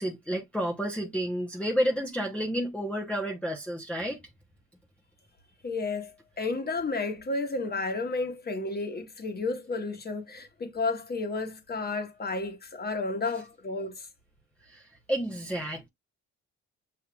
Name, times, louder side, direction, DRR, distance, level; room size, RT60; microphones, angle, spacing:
voice 1, 0.0-4.2 14.6-15.9, equal, 5° left, 0.8 m, -30 dB
voice 2, 5.6-14.1, left 3 dB, 30° left, 1.3 m, -32 dB
6.8 x 2.8 x 2.3 m
cardioid pair, 90°, 30 cm